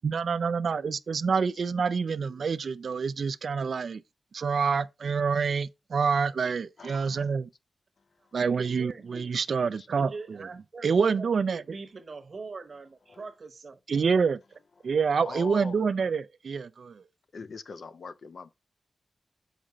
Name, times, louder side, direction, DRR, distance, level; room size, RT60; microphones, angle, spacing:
voice 1, 0.0-4.0 4.3-7.5 8.3-10.5 10.8-11.6 13.9-14.4 14.8-17.0, right 5 dB, 70° right, 0.3 m, -27 dB
voice 2, 6.8-7.3 8.0-8.4 9.8-9.9 13.1-13.3 14.8-14.9 15.2-15.8 17.3-18.5, left 5 dB, 65° left, 0.6 m, -43 dB
voice 3, 8.4-9.3 10.0-13.8, right 4 dB, 50° right, 0.9 m, -42 dB
6.3 x 5.0 x 4.2 m
wide cardioid pair, 120°, 0 cm